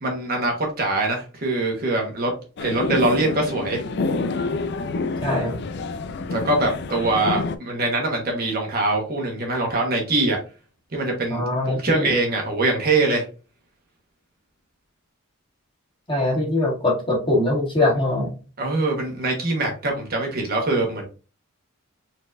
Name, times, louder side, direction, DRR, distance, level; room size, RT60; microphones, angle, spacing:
voice 1, 0.0-2.3 2.6-3.8 6.3-10.4 10.9-13.2 18.6-21.1, right 2 dB, 45° right, 1 dB, 1.2 m, -23 dB
sound 1, 2.6-7.6, left 3 dB, 50° left, 0.4 m, -28 dB
voice 2, 5.2-5.6 11.3-12.1 16.1-18.3, left 2 dB, 25° left, -3 dB, 1.9 m, -22 dB
4.4 x 3.9 x 2.5 m, 0.33 s
head